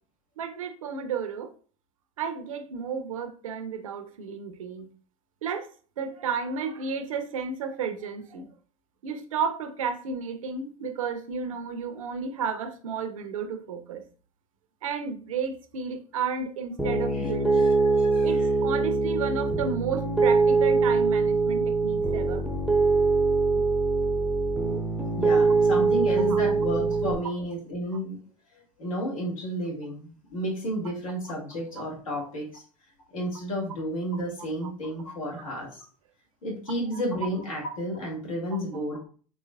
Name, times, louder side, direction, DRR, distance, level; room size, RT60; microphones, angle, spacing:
voice 1, 0.4-1.5 2.2-4.9 5.4-5.7 6.0-8.5 9.0-14.0 14.8-17.7 18.2-22.4 26.3-26.4, right 6 dB, 70° right, 8 dB, 0.6 m, -32 dB
Piano, 16.8-27.1, right 4 dB, ahead, 0.6 m, -23 dB
voice 2, 17.1-18.5 25.2-28.2 28.5-32.6 33.1-35.8 36.4-39.0, equal, 75° left, -2 dB, 1.6 m, -32 dB
4.2 x 3.2 x 2.2 m, 0.41 s
figure-of-eight pair, 75°, 18 cm